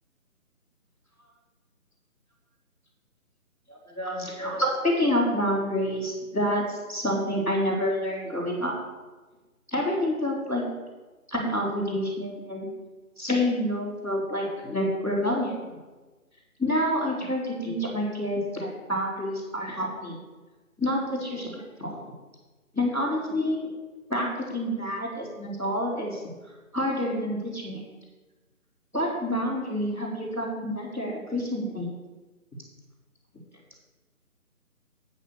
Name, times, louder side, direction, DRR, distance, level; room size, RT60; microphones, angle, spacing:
voice 1, 3.7-8.7 9.7-10.6 11.3-12.7 13.2-15.8 16.6-20.2 20.8-22.0 22.7-23.7 24.1-26.3 26.7-27.8 28.9-31.9, equal, 5° right, -16 dB, 2.8 m, -28 dB
8.5 x 6.4 x 6.9 m, 1.2 s
figure-of-eight pair, 170°, 44 cm